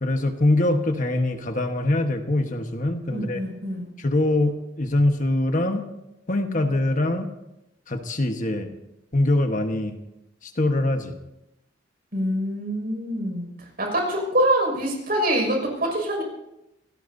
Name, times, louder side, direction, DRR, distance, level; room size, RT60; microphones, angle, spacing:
voice 1, 0.0-3.4 4.0-5.8 6.3-7.3 7.9-8.7 9.1-10.0 10.6-11.2, left 1 dB, 45° left, 5 dB, 1.3 m, -23 dB
voice 2, 3.1-3.9 12.1-16.2, right 1 dB, 50° right, 1 dB, 6.1 m, -25 dB
26.5 x 18.0 x 2.8 m, 0.88 s
head